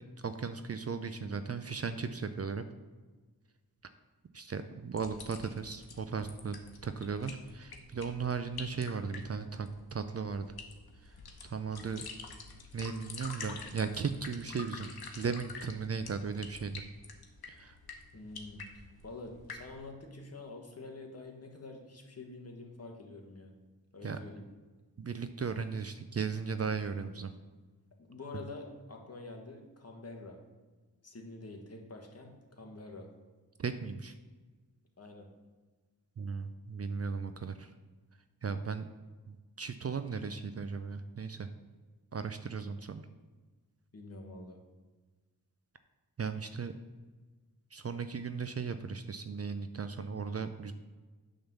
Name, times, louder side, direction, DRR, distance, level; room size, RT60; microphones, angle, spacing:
voice 1, 0.0-2.6 4.3-6.6 6.8-10.5 11.0-11.1 11.4-12.1 12.7-16.8 17.5-17.8 24.0-24.2 25.0-27.3 28.3-28.4 33.6-34.1 36.2-37.7 38.4-38.9 39.3-41.5 42.1-43.1 46.2-46.7 47.7-50.7, right 5 dB, 40° right, 10 dB, 0.5 m, -36 dB
sound 1, 5.0-19.8, left 4 dB, 75° left, 1.1 m, -48 dB
voice 2, 18.1-23.5 23.9-24.5 28.1-30.4 31.0-33.1 35.0-35.3 43.9-44.6, left 2 dB, 40° left, 2 dB, 1.5 m, -47 dB
8.7 x 3.8 x 7.0 m, 1.3 s
wide cardioid pair, 95°, 37 cm